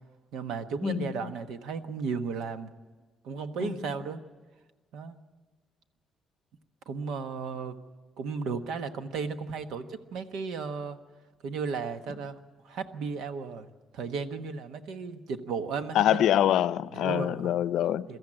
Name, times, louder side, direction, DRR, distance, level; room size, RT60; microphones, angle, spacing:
voice 1, 0.3-2.7 3.2-4.2 4.9-5.2 6.9-7.8 8.2-11.0 11.4-12.4 12.6-13.7 13.9-16.3 16.9-17.5 18.1-18.2, right 5 dB, 85° right, 1.2 m, -34 dB
voice 2, 15.9-18.2, left 11 dB, 80° left, 0.6 m, -25 dB
23.0 x 13.5 x 8.8 m
cardioid pair, 145°, 0 cm